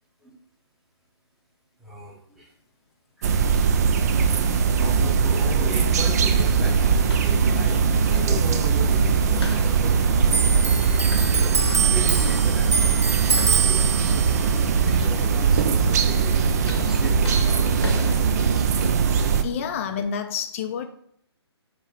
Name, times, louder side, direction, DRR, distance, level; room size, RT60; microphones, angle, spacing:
voice 1, 1.8-2.5 3.2-3.5 4.6-7.8 8.1-11.6 11.9-14.4 14.8-19.0 19.7-19.9, right 1 dB, ahead, -3 dB, 0.8 m, -37 dB
sound 1, 3.2-19.4, right 6 dB, 40° right, 0.4 m, -20 dB
sound 2, 6.7-18.2, left 3 dB, 70° left, 0.8 m, -38 dB
Clock, 10.3-17.3 17.6-18.9 19.2-20.0, right 5 dB, 85° right, 0.6 m, -27 dB
voice 2, 19.4-20.9, left 7 dB, 30° left, 7 dB, 0.4 m, -28 dB
3.6 x 2.7 x 4.3 m, 0.68 s
figure-of-eight pair, 140°, 14 cm